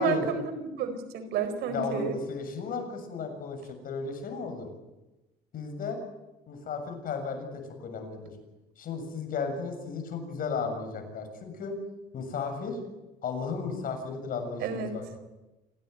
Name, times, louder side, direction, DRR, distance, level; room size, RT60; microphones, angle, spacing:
voice 1, 0.0-2.2 14.6-15.0, right 6 dB, 80° right, 10 dB, 4.4 m, -30 dB
voice 2, 1.7-3.6 3.8-4.7 5.5-6.0 6.5-7.5 7.8-8.2 8.8-11.8 12.1-12.8 13.2-15.2, left 5 dB, 55° left, 5 dB, 7.2 m, -34 dB
27.5 x 16.5 x 9.4 m, 1.0 s
cardioid pair, 110°, 17 cm